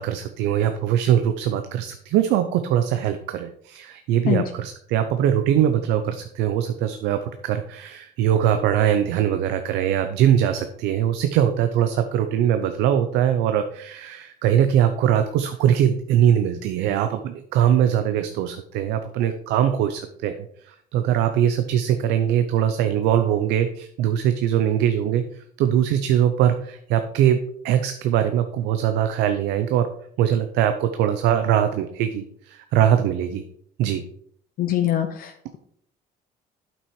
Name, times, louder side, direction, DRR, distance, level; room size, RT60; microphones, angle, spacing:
voice 1, 0.0-20.4 20.6-29.9 30.2-33.4 33.8-34.0, right 10 dB, 90° right, 8 dB, 0.7 m, -22 dB
voice 2, 34.6-35.6, left 11 dB, 60° left, 5 dB, 0.8 m, -24 dB
8.5 x 6.1 x 4.7 m, 0.65 s
cardioid pair, 110°, 17 cm